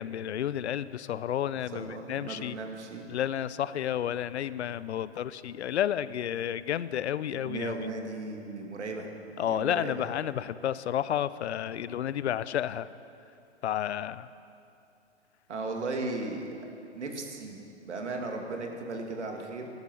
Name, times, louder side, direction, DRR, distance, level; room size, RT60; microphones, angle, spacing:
voice 1, 0.0-2.5 3.1-7.8 9.4-12.9 13.6-14.3, left 10 dB, 65° left, 17 dB, 0.6 m, -31 dB
voice 2, 1.7-3.0 7.3-10.0 15.5-16.5 16.9-19.7, right 3 dB, 75° right, 2 dB, 2.3 m, -36 dB
15.5 x 12.0 x 6.3 m, 2.7 s
hypercardioid pair, 120°, 35 cm